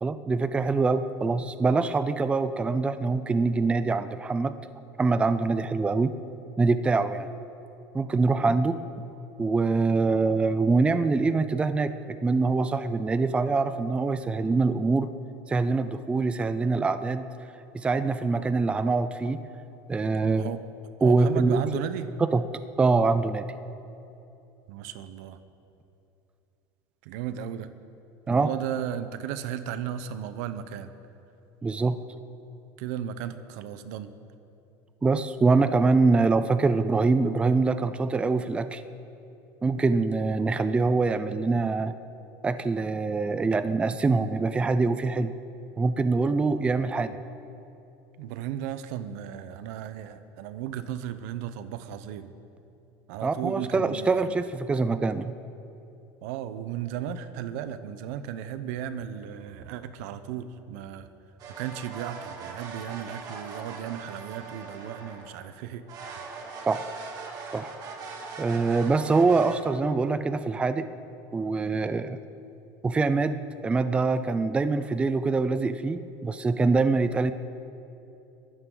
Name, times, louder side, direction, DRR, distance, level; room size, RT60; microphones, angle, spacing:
voice 1, 0.0-4.5 5.0-6.1 6.6-7.3 7.9-8.8 9.4-15.1 15.5-17.3 17.7-19.4 19.9-20.5 21.0-21.6 22.3-22.4 22.8-23.5 28.3-28.5 31.6-32.0 35.0-38.8 39.6-41.9 42.4-45.3 45.8-47.2 53.2-55.3 66.7-66.9 67.5-67.7 68.4-70.8 71.3-72.2 72.8-77.3, right 3 dB, 15° right, 11 dB, 0.5 m, -24 dB
voice 2, 20.1-20.6 21.0-22.1 24.7-25.4 27.0-27.7 28.3-30.9 32.8-34.1 48.2-52.3 53.1-54.4 56.2-61.1 61.6-65.9 66.2-66.3, right 10 dB, 80° right, 12 dB, 0.9 m, -35 dB
sound 1, 61.4-65.5 65.9-69.6, right 4 dB, 45° right, 2.2 m, -41 dB
22.5 x 12.5 x 3.9 m, 2.9 s
cardioid pair, 140°, 9 cm